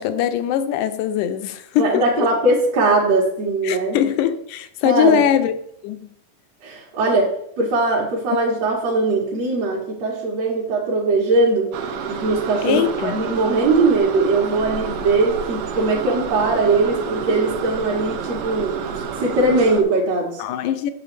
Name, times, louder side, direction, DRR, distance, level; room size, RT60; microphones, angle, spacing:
voice 1, 0.0-2.3 3.6-5.5 5.8-6.0 12.6-13.1 20.4-20.9, left 9 dB, 85° left, 2.1 m, -21 dB
voice 2, 1.8-4.0 4.8-5.2 6.6-7.3 7.6-11.7 12.1-20.4, right 2 dB, 60° right, 2.4 m, -20 dB
sound 1, 11.7-19.8, right 6 dB, 85° right, 2.3 m, -29 dB
8.7 x 6.8 x 3.3 m
omnidirectional pair, 3.5 m